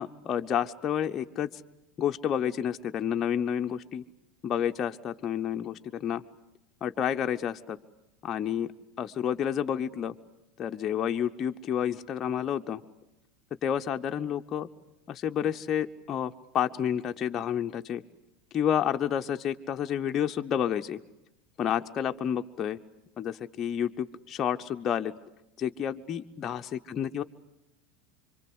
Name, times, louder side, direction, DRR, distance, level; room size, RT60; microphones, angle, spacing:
voice 1, 0.0-1.6 2.0-4.0 4.4-6.2 6.8-7.8 8.2-8.7 9.0-10.1 10.6-12.8 13.6-14.7 15.1-18.0 18.5-21.0 21.6-22.8 23.2-25.1 25.6-27.2, left 9 dB, 35° left, 5 dB, 0.9 m, -30 dB
26.0 x 24.5 x 8.0 m, 0.91 s
hypercardioid pair, 85°, 0 cm